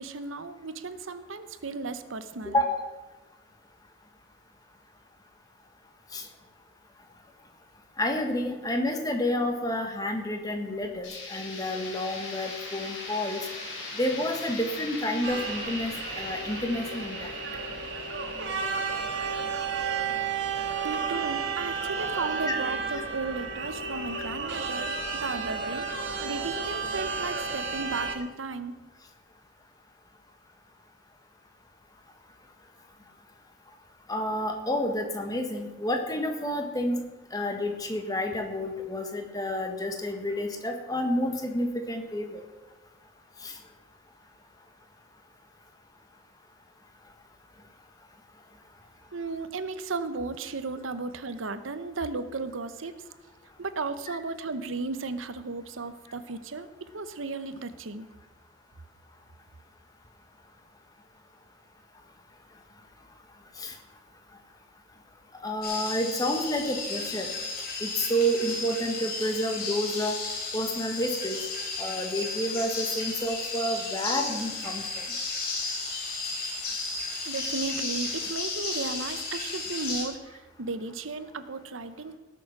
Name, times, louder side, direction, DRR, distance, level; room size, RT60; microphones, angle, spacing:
voice 1, 0.0-2.6 20.8-25.9 26.2-28.7 49.1-52.9 53.6-58.1 77.3-80.2 80.6-82.2, right 3 dB, 80° right, 11 dB, 0.9 m, -35 dB
voice 2, 2.4-2.8 6.1-6.2 8.0-13.4 13.9-17.3 22.5-22.6 34.1-37.0 37.3-42.4 43.4-43.5 63.6-63.7 65.4-67.3 67.8-70.2 70.5-71.4 71.8-75.0, equal, 20° left, 3 dB, 1.5 m, -29 dB
sound 1, 11.0-20.8, left 3 dB, 70° left, 4.6 m, -41 dB
greek riot, 15.2-28.2, right 5 dB, 60° right, 1.8 m, -32 dB
sound 2, 65.6-80.0, left 3 dB, 50° left, 3.3 m, -34 dB
18.0 x 7.1 x 5.9 m, 1.1 s
head